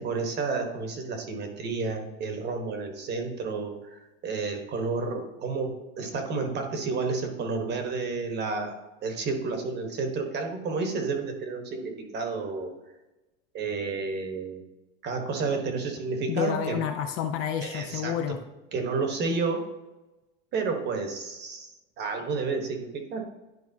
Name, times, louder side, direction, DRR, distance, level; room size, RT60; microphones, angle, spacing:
voice 1, 0.0-8.8 9.0-12.7 13.5-14.7 15.0-16.8 17.6-18.2 18.7-19.6 20.5-23.3, right 4 dB, 30° right, 4 dB, 1.1 m, -31 dB
voice 2, 16.3-18.4, left 8 dB, 40° left, 6 dB, 0.5 m, -29 dB
10.5 x 4.7 x 2.7 m, 1.1 s
supercardioid pair, 140°, 36 cm